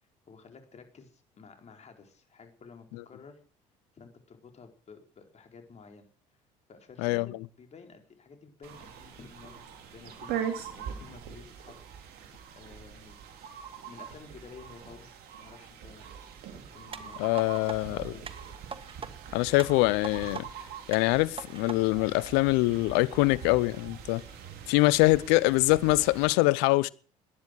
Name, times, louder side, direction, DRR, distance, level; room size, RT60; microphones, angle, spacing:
voice 1, 0.3-3.4 3.9-6.1 6.7-11.8 12.6-13.2 13.9-15.1 15.4-16.1 16.5-17.3 17.6-18.2, left 5 dB, 40° left, 4.4 m, -51 dB
sound 1, 8.6-26.3, right 8 dB, 65° right, 3.1 m, -42 dB
sound 2, 16.9-17.8 18.3-19.1 19.6-20.4 20.9-21.8 22.3-22.4, right 5 dB, 30° right, 1.6 m, -41 dB
voice 2, 17.2-18.1 19.3-20.5 20.9-24.2 24.7-26.9, left 21 dB, 75° left, 0.7 m, -24 dB
18.5 x 10.5 x 6.4 m
hypercardioid pair, 65°, 17 cm